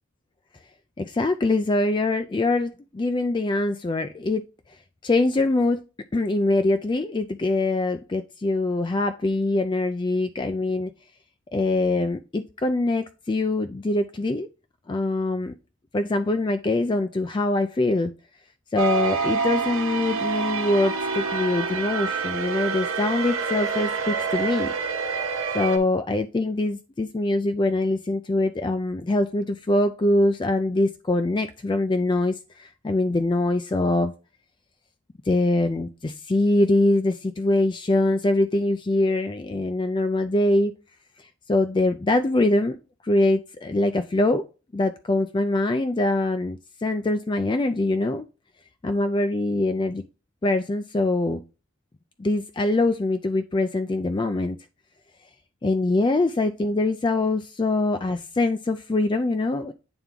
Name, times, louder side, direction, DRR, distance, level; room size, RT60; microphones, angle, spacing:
voice 1, 1.0-4.4 5.0-5.8 6.1-10.9 11.5-14.5 14.9-15.5 15.9-18.1 18.7-24.7 25.5-34.1 35.3-40.7 41.5-42.8 43.0-44.5 44.7-48.3 48.8-50.0 50.4-51.4 52.2-54.6 55.6-59.7, left 2 dB, 20° left, 0.3 m, -23 dB
sound 1, 18.8-25.8, right 5 dB, 75° right, 1.1 m, -27 dB
8.9 x 3.5 x 3.7 m
head